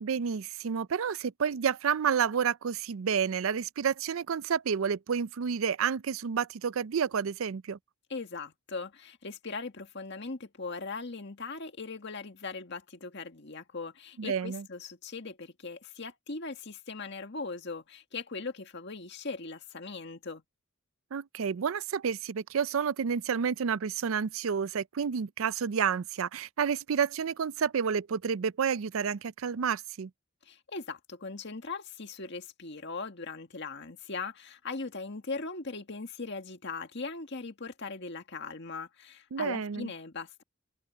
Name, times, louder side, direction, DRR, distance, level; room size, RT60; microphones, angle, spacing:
voice 1, 0.0-7.8 14.2-14.6 21.1-30.1 39.3-39.9, right 7 dB, 85° right, 0.5 m, -30 dB
voice 2, 8.1-20.4 30.4-40.4, left 4 dB, 60° left, 1.8 m, -39 dB
head